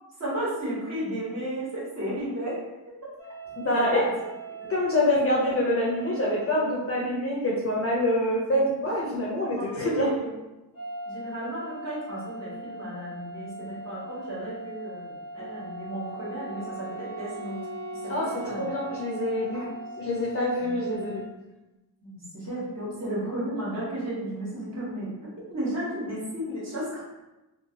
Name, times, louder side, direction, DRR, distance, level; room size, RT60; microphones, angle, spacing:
voice 1, 0.2-2.6 3.7-4.1 4.6-4.7 9.6-10.3 11.1-17.6 18.0-18.6 19.5-19.6 20.6-20.8 22.0-25.1 25.4-27.0, right 1 dB, 40° right, -7 dB, 1.3 m, -33 dB
sound 1, 3.2-6.7 10.7-21.3, right 2 dB, 20° right, 1.2 m, -41 dB
voice 2, 3.6-4.0 4.7-10.1 18.1-19.7 20.0-21.2, left 1 dB, 35° left, -4 dB, 0.6 m, -26 dB
Wind instrument woodwind instrument, 15.4-20.2, right 2 dB, 70° right, 0.8 m, -41 dB
2.7 x 2.4 x 2.7 m, 1.0 s
wide cardioid pair, 125°, 42 cm